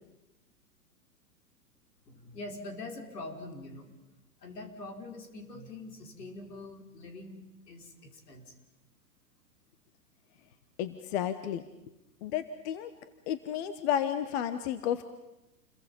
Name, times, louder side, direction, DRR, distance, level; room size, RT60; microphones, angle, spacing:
voice 1, 2.0-3.9 4.4-8.6, left 2 dB, 70° left, 3 dB, 4.9 m, -44 dB
voice 2, 10.8-11.6 12.2-12.9 13.3-15.0, left 10 dB, 40° left, 11 dB, 1.3 m, -32 dB
29.5 x 22.5 x 5.4 m, 0.97 s
hypercardioid pair, 115°, 50 cm